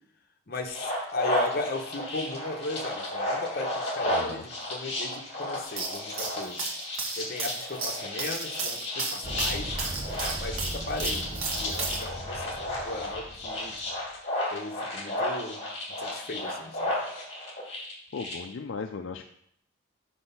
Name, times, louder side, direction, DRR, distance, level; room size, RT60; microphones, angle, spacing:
voice 1, 0.5-6.6 7.2-9.8 10.4-13.8 14.5-15.6 16.0-17.0, left 2 dB, 45° left, 4 dB, 0.9 m, -37 dB
sound 1, 0.7-18.3, left 1 dB, 30° left, 2.1 m, -33 dB
voice 2, 4.1-4.4 18.1-19.2, left 5 dB, 65° left, 5 dB, 0.4 m, -36 dB
sound 2, 5.6-12.0, right 4 dB, 90° right, 1.3 m, -34 dB
sound 3, 9.2-14.0, right 1 dB, 25° right, 0.6 m, -38 dB
6.2 x 5.3 x 5.5 m, 0.71 s
head